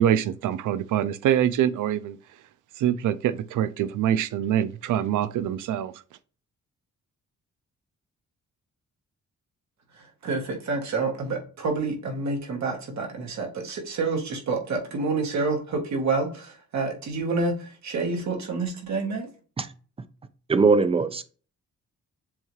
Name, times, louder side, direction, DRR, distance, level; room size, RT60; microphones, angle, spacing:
voice 1, 0.0-2.2 2.8-5.9, right 10 dB, 85° right, 0.4 m, -24 dB
voice 2, 10.2-19.3, right 3 dB, 65° right, 1.3 m, -28 dB
voice 3, 20.5-21.2, right 4 dB, 20° right, 0.3 m, -20 dB
7.1 x 2.4 x 3.1 m
cardioid pair, 125°, 30 cm